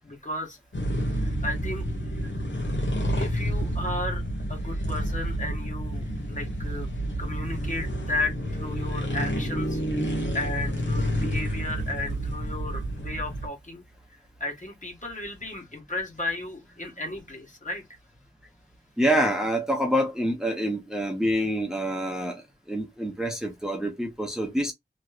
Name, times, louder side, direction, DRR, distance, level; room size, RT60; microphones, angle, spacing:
voice 1, 0.0-0.6 1.1-1.8 3.2-4.2 4.5-6.9 7.2-13.8 14.1-17.8, left 2 dB, 40° left, 1.5 m, -34 dB
sound 1, 0.7-13.5, equal, 85° left, 1.1 m, -29 dB
voice 2, 19.0-24.7, equal, 5° right, 0.8 m, -27 dB
3.0 x 2.9 x 2.4 m
wide cardioid pair, 65°, 19 cm